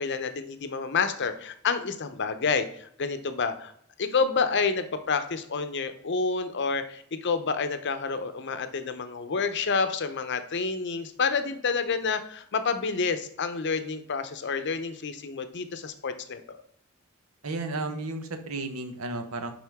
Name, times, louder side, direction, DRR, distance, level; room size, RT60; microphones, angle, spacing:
voice 1, 0.0-3.7 4.0-16.4, left 5 dB, 55° left, 10 dB, 0.7 m, -29 dB
voice 2, 17.4-19.5, right 2 dB, 80° right, 7 dB, 1.0 m, -33 dB
10.5 x 3.7 x 3.6 m, 0.64 s
head